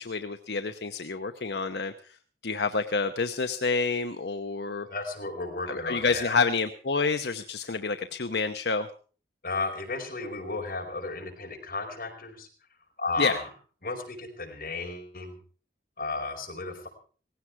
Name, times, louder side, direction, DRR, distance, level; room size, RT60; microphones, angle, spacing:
voice 1, 0.0-2.2 2.4-4.9 5.7-8.9 13.2-13.4, left 4 dB, 75° left, 8 dB, 0.8 m, -28 dB
voice 2, 4.9-6.4 9.4-12.5 13.0-13.5 13.8-15.3 16.0-16.9, left 3 dB, 55° left, 1 dB, 5.0 m, -34 dB
18.0 x 16.5 x 4.7 m, 0.41 s
head